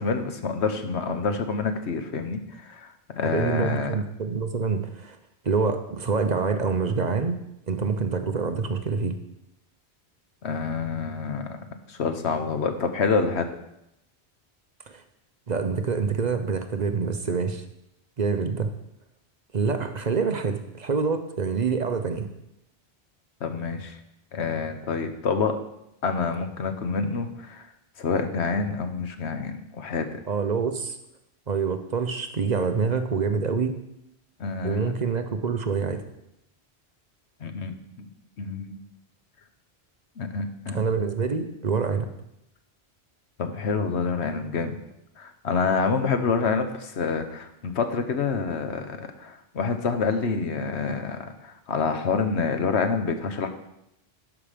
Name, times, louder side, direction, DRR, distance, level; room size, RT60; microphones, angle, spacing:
voice 1, 0.0-2.9 3.2-3.9 10.4-13.5 23.4-24.0 24.3-25.6 26.0-27.7 28.0-30.2 34.4-34.9 37.4-38.1 38.4-38.8 40.2-40.8 43.4-44.8 45.2-53.5, left 5 dB, 85° left, 7 dB, 1.3 m, -27 dB
voice 2, 3.2-5.2 5.4-7.4 7.7-9.1 14.9-15.0 15.5-17.6 18.2-18.7 19.5-22.3 30.3-31.0 31.5-33.7 34.6-36.0 40.7-42.1, right 5 dB, 45° right, 7 dB, 0.8 m, -26 dB
12.5 x 5.8 x 5.1 m, 0.83 s
omnidirectional pair, 1.1 m